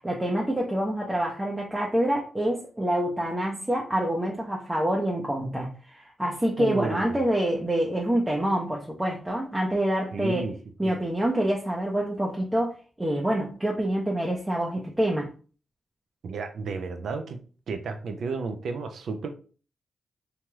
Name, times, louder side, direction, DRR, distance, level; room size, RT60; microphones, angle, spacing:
voice 1, 0.0-10.5 10.8-15.3, right 1 dB, 10° right, -2 dB, 0.6 m, -26 dB
voice 2, 6.6-7.2 10.1-10.6 10.8-10.9 16.2-17.4 17.7-19.3, right 4 dB, 75° right, 6 dB, 0.4 m, -32 dB
3.1 x 2.8 x 2.3 m, 0.39 s
cardioid pair, 65°, 0 cm